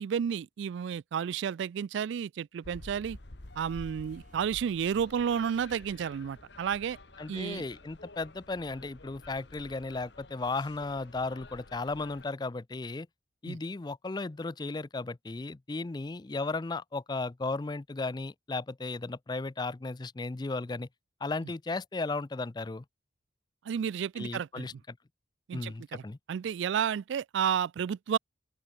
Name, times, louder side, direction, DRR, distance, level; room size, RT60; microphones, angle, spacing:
voice 1, 0.0-3.2 3.6-7.0 7.3-7.6 13.5-13.6 23.7-24.7 25.5-26.0 26.3-28.2, right 8 dB, 70° right, 0.3 m, -31 dB
sound 1, 2.6-12.3, left 2 dB, 65° left, 1.7 m, -50 dB
sound 2, 3.7-9.6 12.1-12.2, right 1 dB, 45° right, 2.5 m, -66 dB
voice 2, 7.2-13.1 13.4-20.9 21.2-22.8 24.2-25.0 25.5-26.2, left 3 dB, 20° left, 0.4 m, -35 dB
open air
head